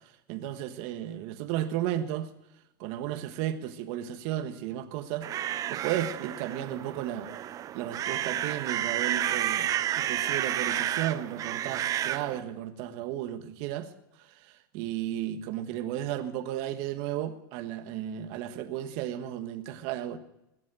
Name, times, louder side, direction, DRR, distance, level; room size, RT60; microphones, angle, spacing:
voice 1, 0.3-2.3 2.8-5.3 5.7-7.3 7.7-9.7 9.9-13.9 14.7-20.2, right 11 dB, 55° right, 1.4 m, -34 dB
sound 1, 5.2-12.4, right 11 dB, 30° right, 0.6 m, -31 dB
21.5 x 7.5 x 6.3 m
supercardioid pair, 120°, 11 cm